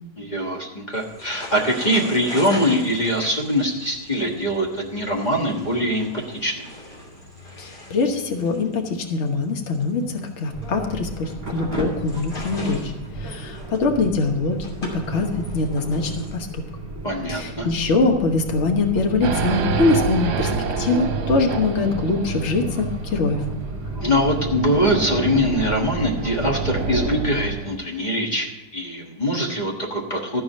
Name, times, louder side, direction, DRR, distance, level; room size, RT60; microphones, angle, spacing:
voice 1, 0.2-6.7 17.0-17.7 24.0-30.4, equal, 25° left, -1 dB, 1.3 m, -23 dB
sound 1, 0.9-16.3, left 1 dB, 65° left, 3.6 m, -40 dB
voice 2, 7.6-16.6 17.3-23.4, left 3 dB, 45° left, 3 dB, 1.3 m, -23 dB
sound 2, 10.5-27.2, right 2 dB, 35° right, 2.2 m, -34 dB
Race car auto racing / Idling / Accelerating revving vroom, 19.2-27.8, right 4 dB, 65° right, 1.4 m, -28 dB
13.5 x 4.9 x 7.2 m, 1.0 s
omnidirectional pair, 1.9 m